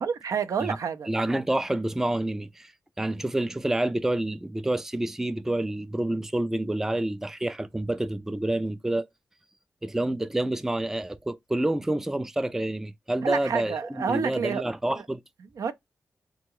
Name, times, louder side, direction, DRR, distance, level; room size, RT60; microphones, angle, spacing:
voice 1, 0.0-1.1 13.2-14.6 15.6-15.7, right 6 dB, 75° right, 0.4 m, -29 dB
voice 2, 1.1-2.7 3.0-9.1 9.8-15.2, right 1 dB, 5° right, 0.3 m, -28 dB
3.6 x 2.2 x 3.0 m
cardioid pair, 80°, 6 cm